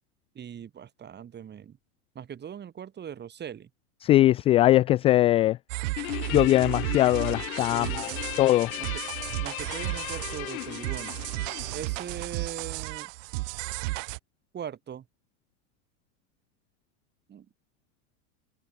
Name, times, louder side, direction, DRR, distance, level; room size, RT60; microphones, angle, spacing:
voice 1, 0.3-1.8 2.1-3.7 7.7-8.2 8.8-9.0 9.4-11.2 11.7-13.1 14.5-15.0 17.3-17.5, right 8 dB, 25° right, 5.8 m, -40 dB
voice 2, 4.0-5.6 6.3-8.1 8.4-8.7, left 15 dB, 15° left, 0.3 m, -21 dB
sound 1, 5.7-14.2, right 24 dB, 55° right, 1.3 m, -34 dB
Guitar, 6.0-12.6, left 18 dB, 65° left, 6.1 m, -37 dB
supercardioid pair, 140°, 44 cm